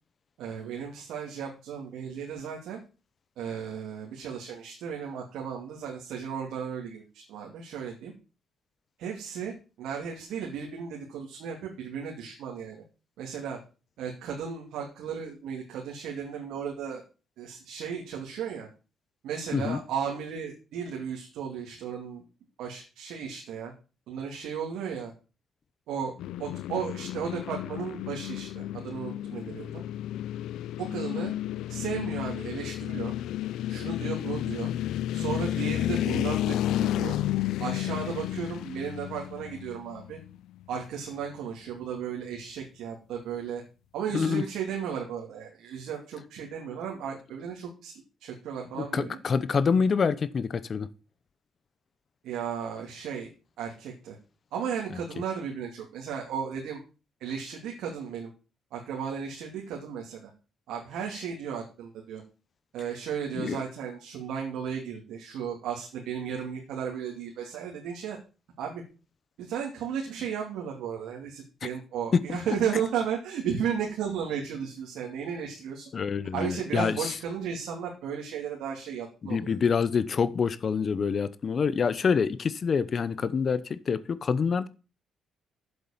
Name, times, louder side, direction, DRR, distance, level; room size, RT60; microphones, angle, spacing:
voice 1, 0.4-2.8 3.4-8.1 9.0-12.8 13.2-13.6 14.0-17.0 17.4-18.7 19.2-22.2 22.6-23.7 24.1-25.1 25.9-26.1 26.4-29.8 30.8-31.3 31.7-33.1 33.7-34.7 35.1-37.2 37.6-40.2 40.7-43.6 43.9-47.9 48.2-49.2 52.2-53.3 53.6-54.2 54.5-56.8 57.2-58.3 58.7-60.3 60.7-62.2 62.7-68.2 68.6-68.8 69.4-75.9 76.3-79.6, right 7 dB, 85° right, 2.6 m, -35 dB
sound 1, 26.2-40.4, left 13 dB, 85° left, 0.5 m, -32 dB
voice 2, 48.9-50.9 63.3-63.6 71.6-71.7 72.1-72.2 75.9-77.1 79.2-84.7, left 6 dB, 45° left, 0.8 m, -26 dB
7.9 x 7.4 x 7.2 m
cardioid pair, 90°, 0 cm